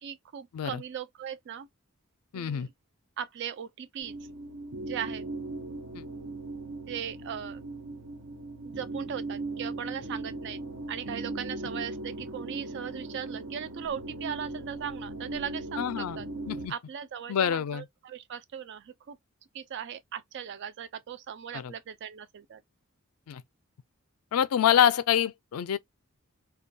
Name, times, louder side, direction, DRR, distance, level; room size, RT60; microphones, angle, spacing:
voice 1, 0.0-1.7 2.3-2.7 3.2-4.2 4.8-5.3 6.9-7.6 8.7-10.6 10.9-16.3 16.7-19.2 19.5-22.6, right 8 dB, 55° right, 0.3 m, -38 dB
voice 2, 2.3-2.7 5.9-6.0 15.8-16.2 16.5-16.7 17.3-17.9 21.5-21.7 23.3-23.4 24.3-25.8, left 9 dB, 80° left, 0.4 m, -26 dB
sound 1, 4.0-16.7, right 2 dB, 85° right, 0.8 m, -38 dB
2.3 x 2.2 x 2.6 m
head